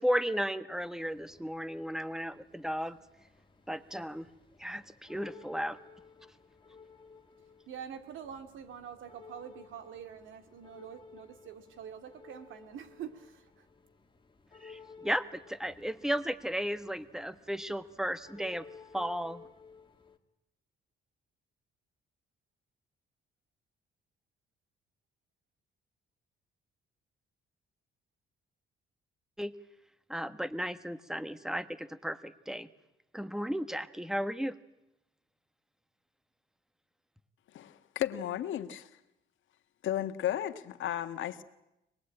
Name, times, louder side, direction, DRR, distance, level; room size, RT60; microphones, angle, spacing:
voice 1, 0.0-3.0 3.7-4.3 4.6-5.8 14.6-18.6 18.9-19.4 29.4-29.5 30.1-32.7 33.1-34.6, equal, 5° right, 12 dB, 1.3 m, -34 dB
sound 1, 0.8-20.2, left 5 dB, 25° left, 2.2 m, -56 dB
voice 2, 7.7-13.7, right 8 dB, 80° right, 8 dB, 2.3 m, -46 dB
voice 3, 37.5-38.9 39.8-41.4, left 11 dB, 75° left, 9 dB, 1.6 m, -34 dB
24.5 x 20.5 x 8.9 m, 0.89 s
cardioid pair, 90°, 20 cm